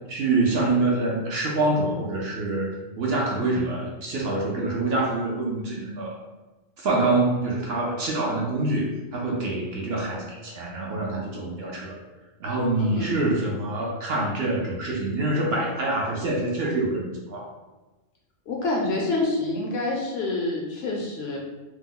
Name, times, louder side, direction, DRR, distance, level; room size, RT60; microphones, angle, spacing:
voice 1, 0.1-2.7 3.0-6.2 6.8-12.0 12.4-17.5, right 2 dB, 60° right, -3 dB, 0.7 m, -26 dB
voice 2, 18.5-21.4, left 2 dB, 65° left, -1 dB, 0.7 m, -27 dB
2.9 x 2.0 x 3.6 m, 1.2 s
omnidirectional pair, 1.3 m